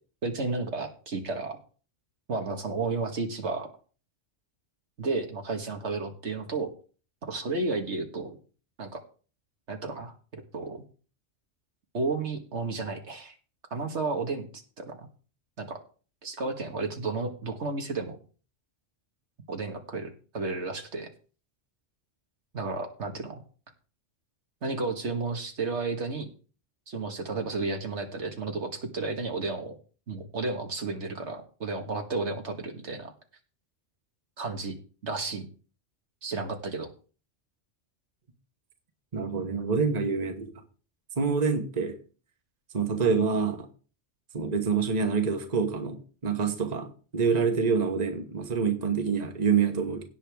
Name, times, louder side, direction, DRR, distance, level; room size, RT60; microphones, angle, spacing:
voice 1, 0.2-1.6 2.3-3.7 5.0-6.7 7.2-8.4 8.8-9.0 9.7-10.8 11.9-13.3 13.7-15.1 15.6-15.8 16.2-18.2 19.5-21.1 22.5-23.4 24.6-26.3 26.9-29.7 30.1-33.1 34.4-34.8 35.0-35.5 36.2-36.9, right 3 dB, 70° right, 1.8 m, -32 dB
voice 2, 39.1-40.5 41.2-42.0 42.7-43.7 44.3-50.0, right 5 dB, 35° right, 1.3 m, -26 dB
17.0 x 6.7 x 3.5 m
omnidirectional pair, 1.2 m